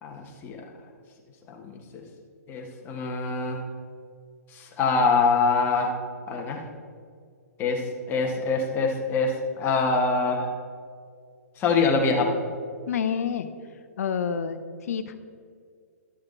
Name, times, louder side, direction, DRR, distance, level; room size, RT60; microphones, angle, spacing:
voice 1, 0.0-0.6 1.5-2.0 2.5-3.6 4.5-5.9 6.3-6.6 7.6-10.5 11.6-12.3, left 4 dB, 25° left, 1 dB, 1.5 m, -24 dB
voice 2, 12.9-13.5 14.0-14.6 14.9-15.2, left 7 dB, 65° left, 10 dB, 0.8 m, -28 dB
12.5 x 6.7 x 4.0 m, 2.1 s
hypercardioid pair, 135°, 9 cm